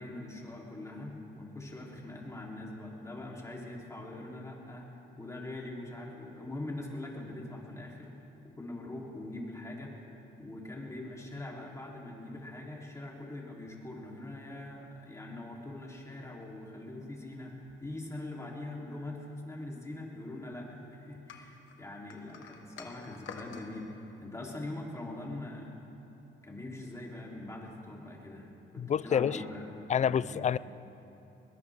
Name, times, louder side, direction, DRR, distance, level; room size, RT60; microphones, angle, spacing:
voice 1, 0.0-4.9 5.2-8.1 8.4-9.9 10.4-17.5 17.8-25.8 26.4-30.4, left 2 dB, 15° left, -3 dB, 3.5 m, -42 dB
sound 1, 21.3-23.7, left 6 dB, 85° left, 1.4 m, -48 dB
voice 2, 28.8-29.4 29.9-30.6, left 8 dB, 35° left, 19 dB, 0.4 m, -28 dB
21.0 x 19.0 x 3.7 m, 3.0 s
cardioid pair, 90°, 20 cm